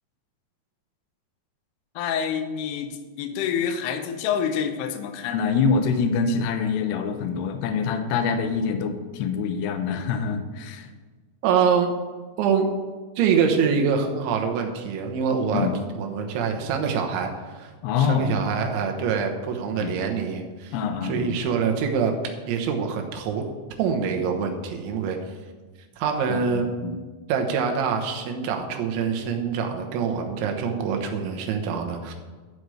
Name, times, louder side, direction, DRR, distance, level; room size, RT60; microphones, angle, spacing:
voice 1, 2.0-10.9 15.5-15.8 17.8-18.4 19.7-20.0 20.7-21.4 26.3-27.0, left 6 dB, 75° left, 7 dB, 2.7 m, -26 dB
voice 2, 11.4-11.9 12.4-12.7 13.2-15.7 16.0-17.7 18.0-20.8 21.0-22.2 22.5-23.4 23.8-25.2 26.0-26.7 27.3-32.1, right 6 dB, 85° right, 3 dB, 3.5 m, -25 dB
12.5 x 4.9 x 7.8 m, 1.4 s
omnidirectional pair, 5.2 m